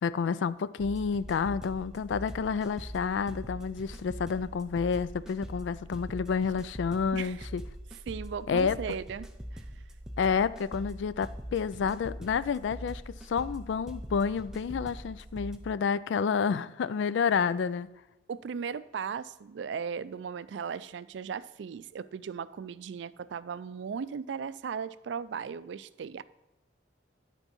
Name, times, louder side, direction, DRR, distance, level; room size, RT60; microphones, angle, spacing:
voice 1, 0.0-7.6 8.5-8.8 10.2-17.9, left 6 dB, 85° left, 0.3 m, -29 dB
sound 1, 0.8-15.6, equal, 5° right, 0.5 m, -43 dB
voice 2, 7.1-7.5 8.1-9.6 18.3-26.2, right 6 dB, 80° right, 0.3 m, -37 dB
11.0 x 4.5 x 5.4 m
head